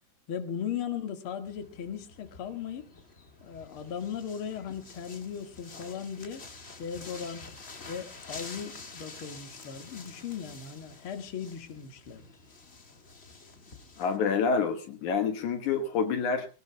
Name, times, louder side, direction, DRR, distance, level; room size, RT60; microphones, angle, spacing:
voice 1, 0.3-2.9 3.4-6.4 6.8-7.5 7.9-12.3, left 8 dB, 45° left, 6 dB, 2.4 m, -37 dB
sound 1, 1.5-14.2, left 3 dB, 25° left, 1.4 m, -48 dB
voice 2, 14.0-16.5, left 5 dB, 70° left, 6 dB, 2.8 m, -27 dB
23.5 x 18.0 x 2.3 m, 0.33 s
omnidirectional pair, 3.7 m